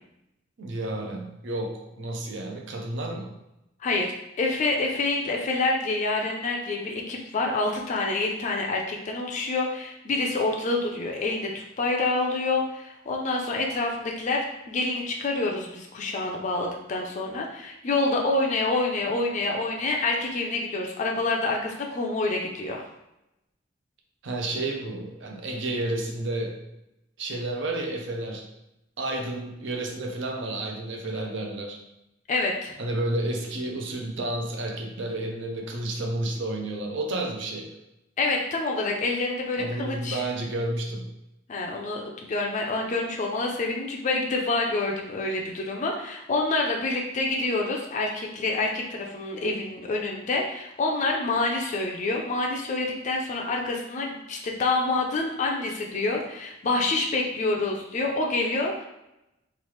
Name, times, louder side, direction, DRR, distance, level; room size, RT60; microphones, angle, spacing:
voice 1, 0.6-3.3 24.2-26.6 27.2-28.5 29.0-31.8 32.8-37.7 39.6-41.1, right 2 dB, 65° right, 1 dB, 0.5 m, -31 dB
voice 2, 4.4-22.9 32.3-32.7 38.2-40.2 41.5-58.9, left 2 dB, 40° left, 0 dB, 0.4 m, -27 dB
3.2 x 2.4 x 3.0 m, 0.88 s
head